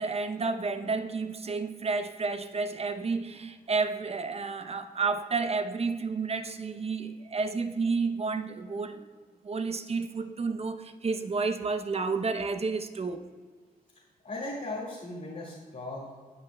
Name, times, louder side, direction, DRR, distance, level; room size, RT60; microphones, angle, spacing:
voice 1, 0.0-9.0 9.4-13.2, right 4 dB, 40° right, 8 dB, 0.7 m, -31 dB
voice 2, 14.2-16.1, left 2 dB, 55° left, -6 dB, 2.1 m, -37 dB
15.5 x 5.7 x 2.2 m, 1.5 s
cardioid pair, 75°, 16 cm